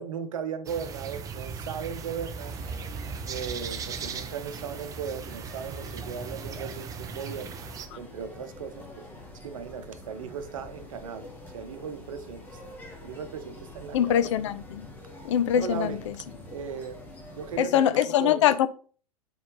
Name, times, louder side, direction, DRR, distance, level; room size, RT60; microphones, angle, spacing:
voice 1, 0.0-2.5 3.3-7.6 8.0-9.1 9.4-11.3 11.5-12.7 13.0-14.2 15.6-16.1 16.5-17.0 17.3-17.8 18.2-18.5, right 7 dB, 60° right, 0.8 m, -37 dB
sound 1, 0.7-7.9, right 6 dB, 20° right, 0.5 m, -38 dB
sound 2, 2.4-17.6, left 2 dB, 10° left, 1.4 m, -46 dB
voice 2, 13.9-14.9 15.2-16.1 17.6-18.7, left 10 dB, 50° left, 0.5 m, -23 dB
4.3 x 4.2 x 5.3 m
figure-of-eight pair, 90°, 19 cm